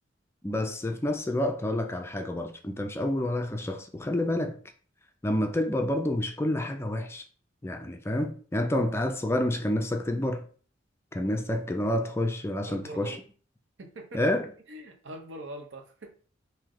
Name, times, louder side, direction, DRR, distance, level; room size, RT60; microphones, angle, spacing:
voice 1, 0.4-4.6 5.2-7.2 7.6-10.5 11.1-13.2 14.1-14.5, left 1 dB, 15° left, 0.4 m, -28 dB
voice 2, 12.7-13.2 13.8-14.2 14.7-16.1, right 1 dB, 80° right, 0.8 m, -42 dB
3.1 x 2.7 x 3.7 m
head